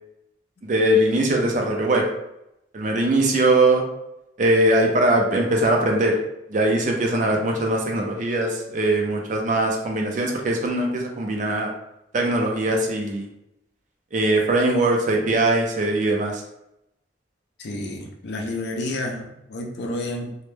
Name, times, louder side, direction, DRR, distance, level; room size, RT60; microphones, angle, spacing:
voice 1, 0.6-2.1 2.7-3.8 4.4-6.2 6.5-11.7 12.1-13.3 14.1-16.4, right 1 dB, 40° right, 1 dB, 0.4 m, -21 dB
voice 2, 17.6-20.4, left 1 dB, 65° left, 1 dB, 0.4 m, -30 dB
2.1 x 2.1 x 3.0 m, 0.85 s
head